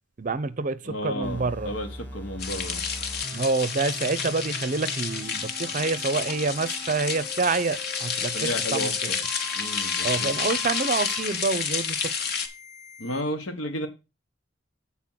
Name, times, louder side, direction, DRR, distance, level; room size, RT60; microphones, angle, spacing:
voice 1, 0.2-1.7 3.3-8.9 10.0-12.1, right 3 dB, 40° right, 0.5 m, -27 dB
voice 2, 0.8-2.8 8.3-8.9 9.5-10.3 13.0-13.9, left 1 dB, 90° left, 1.6 m, -32 dB
sound 1, 1.2-13.2, left 1 dB, 10° left, 1.3 m, -42 dB
sound 2, 2.4-12.5, left 6 dB, 55° left, 1.1 m, -30 dB
7.6 x 4.2 x 5.7 m
head